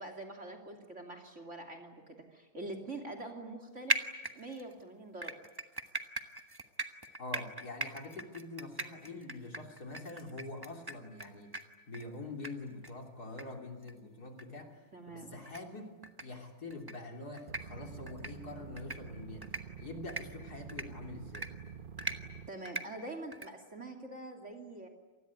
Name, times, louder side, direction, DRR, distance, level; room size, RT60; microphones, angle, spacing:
voice 1, 0.0-2.0 2.3-4.0 4.3-5.3 14.9-15.4 22.5-24.9, right 2 dB, 35° right, 7 dB, 3.0 m, -44 dB
sound 1, 3.9-4.7 5.2-11.3 11.5-11.6 11.9-12.0 12.4-12.5 12.8-12.9 13.4-13.5 13.8-13.9 14.4-14.5 15.5-15.6 16.0-16.2 16.7-16.9 17.4-17.6 18.1-18.3 18.8-19.0 19.4-19.6 20.1-20.2 20.7-20.8 21.3-21.5 22.0-22.2 22.7-22.8 23.3-23.5, right 2 dB, 15° right, 1.1 m, -37 dB
voice 2, 7.2-14.8 15.1-16.0 16.2-21.5, left 2 dB, 45° left, 3 dB, 3.6 m, -45 dB
sound 2, 17.5-22.5, right 7 dB, 60° right, 0.5 m, -48 dB
27.5 x 20.0 x 9.6 m, 1.3 s
omnidirectional pair, 2.3 m